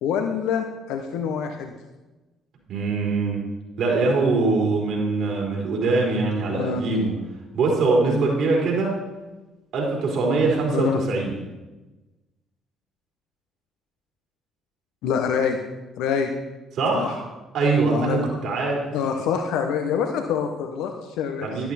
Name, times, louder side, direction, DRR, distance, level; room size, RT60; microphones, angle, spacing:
voice 1, 0.0-1.7 6.5-6.8 10.7-11.0 15.0-15.6 16.0-16.3 16.9-17.1 17.9-18.3 18.9-21.5, left 7 dB, 70° left, 5 dB, 1.0 m, -25 dB
voice 2, 2.7-3.4 3.8-7.1 7.5-8.9 9.7-11.4 16.7-17.2 17.5-18.8 21.4-21.7, right 3 dB, 60° right, -2 dB, 4.0 m, -22 dB
12.0 x 11.5 x 4.2 m, 1.1 s
hypercardioid pair, 50°, 0 cm